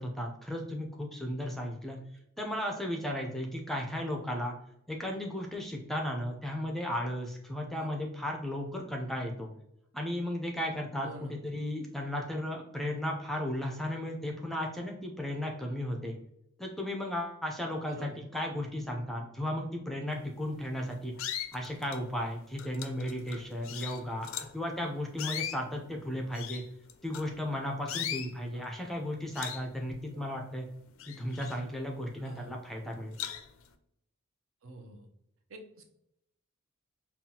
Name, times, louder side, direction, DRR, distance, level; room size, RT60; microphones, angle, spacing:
voice 1, 0.0-2.0 2.4-4.5 4.9-9.5 9.9-16.1 16.6-21.1 21.5-26.6 27.0-30.7 31.1-33.2, left 1 dB, ahead, 1 dB, 0.4 m, -35 dB
voice 2, 11.0-11.3 17.9-18.1 24.3-24.4 28.5-28.6 30.1-30.2 32.2-32.5 34.6-35.1 35.5-35.8, right 1 dB, 70° right, 3 dB, 0.7 m, -47 dB
sound 1, 20.4-20.6 21.2-22.1 22.6-24.6 25.1-27.5 27.9-28.3 28.8-29.0 29.3-30.5 30.8-32.1 32.6-32.7 33.1-33.7, left 10 dB, 70° left, 0.4 m, -39 dB
5.6 x 2.3 x 2.7 m, 0.79 s
head